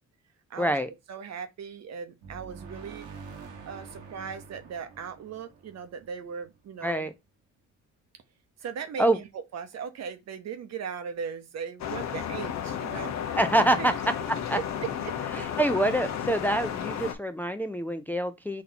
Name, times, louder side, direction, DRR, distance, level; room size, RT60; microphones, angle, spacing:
voice 1, 0.6-0.9 6.8-7.1 9.0-9.2 13.4-14.0 14.3-14.6 15.4-18.6, right 1 dB, 5° left, 0.4 m, -26 dB
voice 2, 1.1-3.1 3.7-7.1 8.6-13.4 13.8-13.9 14.5-15.1, right 7 dB, 60° right, 0.9 m, -38 dB
sound 1, 2.2-6.8, right 5 dB, 75° right, 1.2 m, -46 dB
sound 2, 11.8-17.1, left 9 dB, 65° left, 0.8 m, -33 dB
4.2 x 2.6 x 4.2 m
cardioid pair, 90°, 30 cm